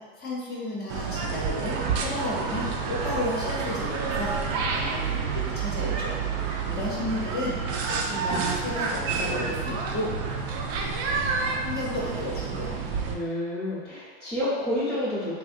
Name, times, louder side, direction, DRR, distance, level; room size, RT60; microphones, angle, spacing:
voice 1, 0.2-7.6 7.9-10.4 11.6-12.7, left 1 dB, 35° left, -6 dB, 0.9 m, -33 dB
sound 1, 0.9-13.1, right 5 dB, 55° right, 0.6 m, -29 dB
voice 2, 13.1-15.4, left 1 dB, ahead, -10 dB, 0.9 m, -29 dB
3.5 x 2.7 x 2.6 m, 1.5 s
hypercardioid pair, 105°, 30 cm